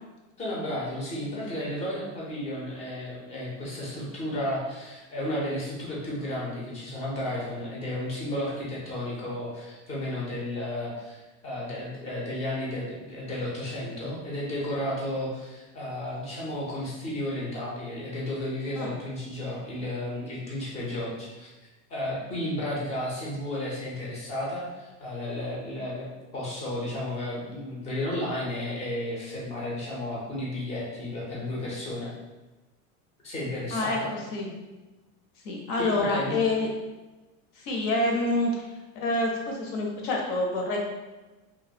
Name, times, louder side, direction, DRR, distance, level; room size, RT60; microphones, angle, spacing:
voice 1, 0.4-21.5 21.9-26.1 26.3-32.1 33.2-34.1 35.8-36.3, left 1 dB, 15° left, -5 dB, 0.5 m, -33 dB
voice 2, 33.7-34.5 35.4-36.7 37.6-38.7 38.9-40.8, left 2 dB, 65° left, 0 dB, 0.8 m, -27 dB
3.0 x 2.4 x 2.6 m, 1.1 s
cardioid pair, 170°, 40 cm